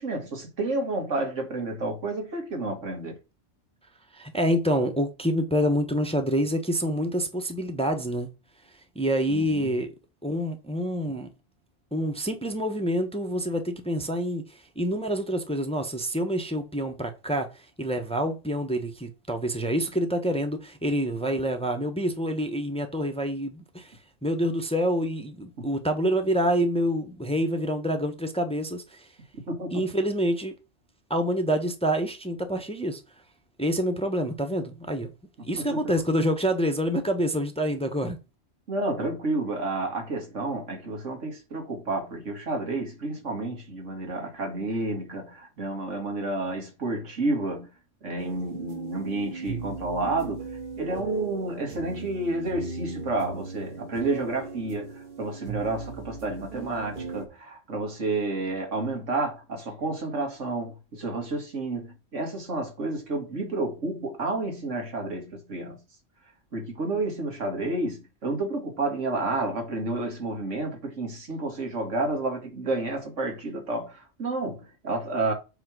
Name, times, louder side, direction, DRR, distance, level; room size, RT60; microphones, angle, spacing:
voice 1, 0.0-3.2 9.3-9.7 29.5-29.7 35.7-35.8 38.7-47.7 48.0-50.5 50.8-65.8 66.5-75.3, right 2 dB, 80° right, 2.2 m, -30 dB
voice 2, 4.1-8.3 8.9-9.9 10.2-11.3 11.9-29.1 29.7-30.5 31.1-33.0 33.6-35.1 35.4-38.2, equal, 5° left, 1.0 m, -27 dB
sound 1, 48.2-57.3, right 4 dB, 45° right, 1.6 m, -38 dB
8.0 x 3.2 x 6.1 m
omnidirectional pair, 1.3 m